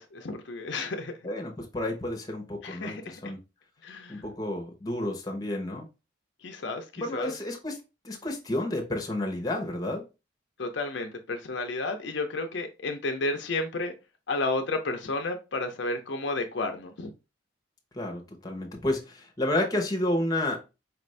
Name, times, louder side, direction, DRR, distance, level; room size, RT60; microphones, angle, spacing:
voice 1, 0.0-1.1 2.6-3.3 3.8-4.2 6.4-7.3 10.6-13.9 14.3-17.1, left 2 dB, 65° left, 0.5 m, -32 dB
voice 2, 1.2-3.4 4.1-5.9 7.0-7.8 8.0-10.0 17.9-20.6, left 1 dB, 20° left, 0.8 m, -31 dB
4.8 x 2.5 x 3.1 m
head